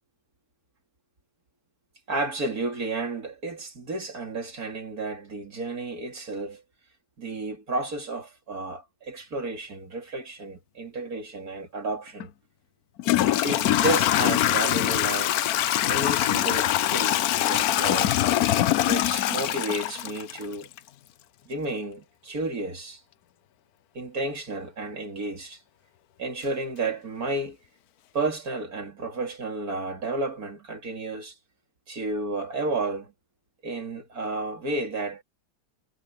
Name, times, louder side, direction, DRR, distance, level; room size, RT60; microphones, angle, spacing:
voice 1, 2.1-6.6 7.2-12.3 13.4-15.5 15.9-18.2 18.8-20.7 21.4-23.0 23.9-25.6 26.2-27.6 28.1-31.3 31.9-33.1 33.6-35.2, right 2 dB, 60° right, 3.3 m, -32 dB
Toilet flush / Trickle dribble, 12.2-12.3 13.0-20.8, left 13 dB, 70° left, 1.1 m, -23 dB
omnidirectional pair, 1.8 m